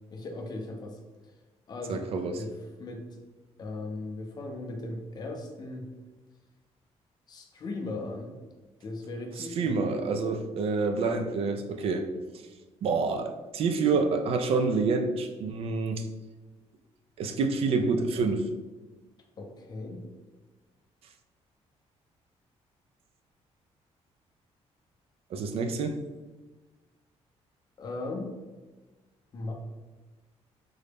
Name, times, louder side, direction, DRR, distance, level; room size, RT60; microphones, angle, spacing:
voice 1, 0.1-1.3 1.7-3.2 3.6-5.9 7.3-8.3 8.8-9.9 19.4-20.0 27.8-28.3 29.3-29.5, left 2 dB, 35° left, 2 dB, 0.5 m, -38 dB
voice 2, 1.9-2.3 9.4-12.1 12.8-16.1 17.2-18.5 25.3-25.9, right 4 dB, 55° right, 6 dB, 0.3 m, -27 dB
3.8 x 2.1 x 3.3 m, 1.2 s
cardioid pair, 165°, 12 cm